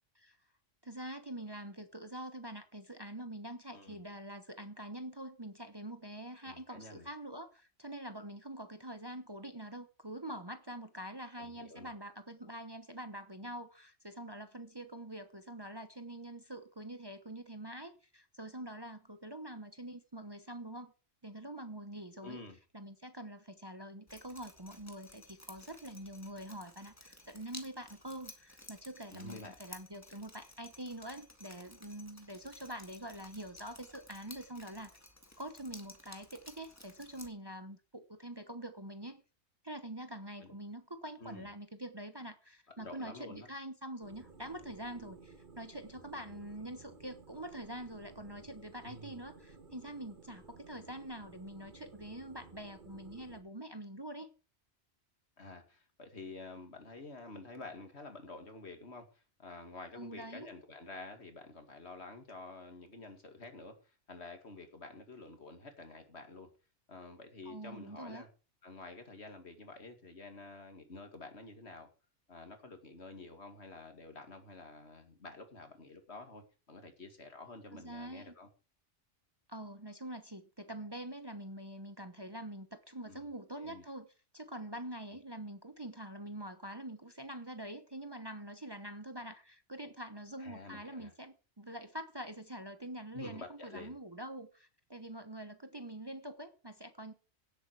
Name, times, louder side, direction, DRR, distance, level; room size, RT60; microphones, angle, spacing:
voice 1, 0.8-20.9 21.2-22.4 22.7-34.9 35.4-39.2 39.6-54.3 60.0-60.5 67.4-68.2 77.7-78.3 79.5-84.1 84.3-97.1, right 1 dB, 20° right, 1.0 m, -45 dB
voice 2, 3.7-4.0 6.4-7.1 11.4-11.9 22.2-22.6 29.1-29.6 40.4-40.5 41.2-41.5 42.8-43.5 48.8-49.1 55.4-59.1 59.4-66.5 66.9-68.3 68.6-71.9 72.3-78.5 83.1-83.3 83.6-83.8 90.4-91.1 93.1-94.0, left 3 dB, 65° left, 2.5 m, -49 dB
Drip, 24.1-37.3, left 1 dB, 15° left, 1.9 m, -55 dB
sound 1, 44.0-53.4, right 4 dB, 45° right, 1.8 m, -56 dB
17.0 x 8.1 x 4.8 m
omnidirectional pair, 1.2 m